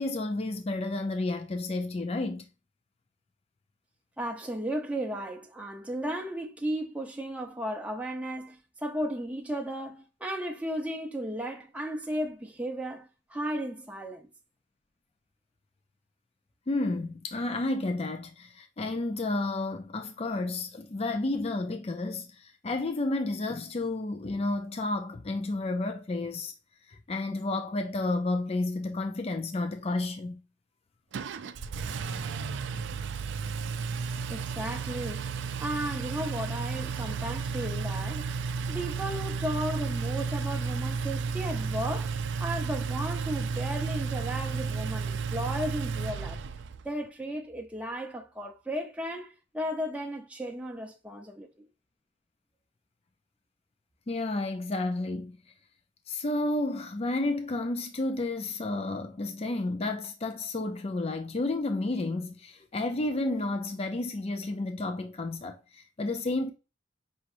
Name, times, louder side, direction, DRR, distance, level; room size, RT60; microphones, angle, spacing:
voice 1, 0.0-2.5 16.7-26.5 26.9-30.4 32.0-32.2 54.1-55.4 56.1-66.5, left 2 dB, 35° left, 0.4 m, -31 dB
voice 2, 4.2-14.3 34.3-35.3 35.6-38.4 38.7-46.4 46.8-51.7, equal, 5° right, 0.7 m, -35 dB
Engine, 31.1-46.8, right 5 dB, 70° right, 0.4 m, -33 dB
5.5 x 3.0 x 2.5 m
head